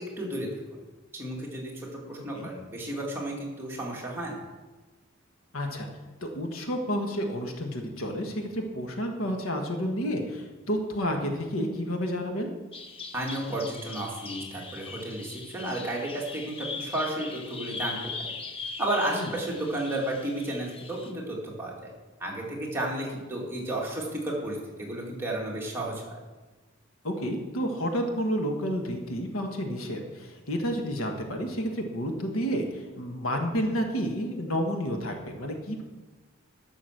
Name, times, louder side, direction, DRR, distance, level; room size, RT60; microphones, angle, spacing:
voice 1, 0.2-0.5 1.1-4.4 13.1-18.4 18.8-21.9 22.2-26.2, right 1 dB, 10° right, -4 dB, 2.4 m, -32 dB
voice 2, 5.5-5.9 6.2-12.5 19.1-19.3 27.0-35.8, equal, 80° left, 3 dB, 1.6 m, -30 dB
Bird vocalization bird call bird song, 12.7-21.1, left 4 dB, 25° left, 0.9 m, -40 dB
12.0 x 6.3 x 6.6 m, 1.2 s
head